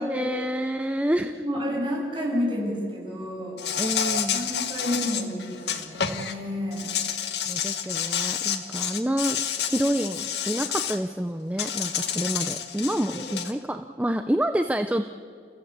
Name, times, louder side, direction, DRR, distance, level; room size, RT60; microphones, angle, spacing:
voice 1, 0.0-1.3 3.8-4.4 7.5-15.1, right 1 dB, 10° right, 8 dB, 0.6 m, -28 dB
voice 2, 1.2-3.6 4.3-6.9 13.1-13.2, left 1 dB, 30° right, -2 dB, 7.0 m, -30 dB
Insect, 3.6-6.3 6.7-11.0 11.6-13.5, left 8 dB, 75° left, 1.5 m, -29 dB
29.5 x 15.0 x 8.2 m, 2.3 s
head